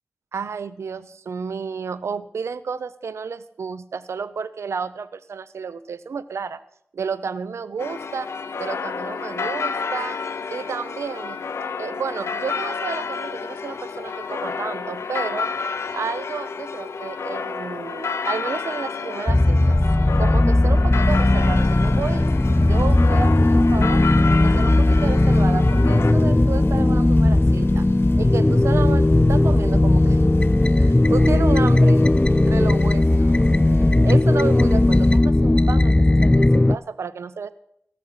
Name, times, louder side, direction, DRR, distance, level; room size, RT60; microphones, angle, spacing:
voice 1, 0.3-6.6 6.9-8.3 8.6-10.2 10.5-11.4 11.8-15.5 15.9-19.8 20.2-22.2 22.6-24.0 24.4-27.8 28.2-30.3 30.8-32.1 32.5-37.5, right 5 dB, 90° right, 15 dB, 0.6 m, -31 dB
sound 1, 7.8-26.1, left 5 dB, 85° left, 0.8 m, -30 dB
sound 2, 19.3-36.8, left 2 dB, 20° left, 0.4 m, -17 dB
sound 3, 21.0-35.2, left 2 dB, 60° left, 1.4 m, -36 dB
18.0 x 6.4 x 5.7 m, 0.73 s
cardioid pair, 40°, 5 cm